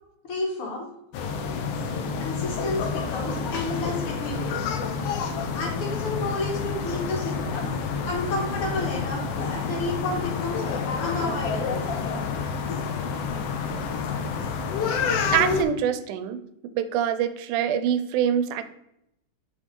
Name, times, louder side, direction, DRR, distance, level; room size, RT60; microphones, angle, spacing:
voice 1, 0.2-0.9 2.2-4.7 5.5-11.9, left 2 dB, 55° left, -1 dB, 1.9 m, -31 dB
sound 1, 1.1-15.6, left 5 dB, 80° left, 1.3 m, -28 dB
voice 2, 15.3-16.4 16.8-18.6, right 9 dB, 90° right, 11 dB, 2.1 m, -24 dB
6.1 x 4.9 x 3.7 m, 0.81 s
omnidirectional pair, 3.5 m